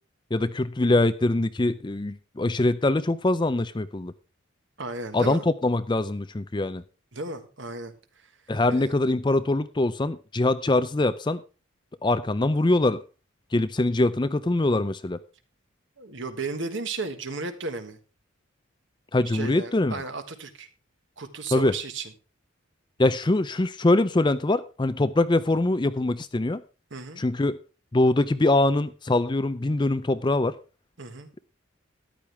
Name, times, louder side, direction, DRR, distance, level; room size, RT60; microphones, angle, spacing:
voice 1, 0.3-4.1 5.1-6.8 8.5-11.4 12.0-13.0 13.5-15.2 19.1-20.0 21.5-21.7 23.0-26.6 27.2-27.6 27.9-30.5, left 2 dB, 20° left, 13 dB, 0.5 m, -23 dB
voice 2, 4.8-5.5 7.1-8.3 8.7-8.9 16.0-18.0 19.2-20.7 21.2-22.1 26.9-27.2 31.0-31.3, right 3 dB, 60° right, 8 dB, 1.5 m, -34 dB
13.5 x 10.5 x 3.4 m, 0.33 s
head